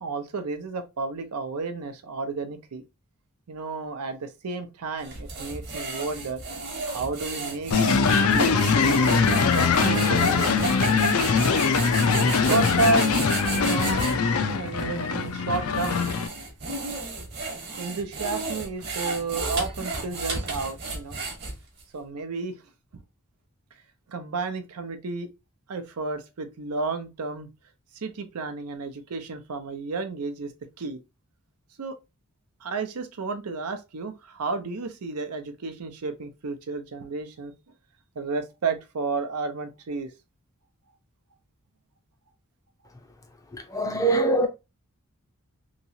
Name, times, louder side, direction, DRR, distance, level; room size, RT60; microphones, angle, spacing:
voice 1, 0.0-2.8 3.5-6.4 6.9-7.8 8.2-11.0 12.4-13.1 13.5-14.0 14.5-16.1 17.8-21.2 21.9-22.6 22.9-23.0 24.1-25.3 25.7-27.5 28.0-30.5 30.8-31.0 31.8-32.0 32.6-37.5 38.2-40.1, right 3 dB, 90° right, 0.6 m, -31 dB
sound 1, 5.0-14.2 14.8-14.9 15.5-21.8, right 3 dB, 45° right, 1.0 m, -33 dB
sound 2, 7.7-16.3, left 5 dB, 70° left, 0.5 m, -22 dB
voice 2, 43.7-44.5, right 2 dB, 15° left, 0.5 m, -22 dB
3.0 x 2.7 x 2.7 m
head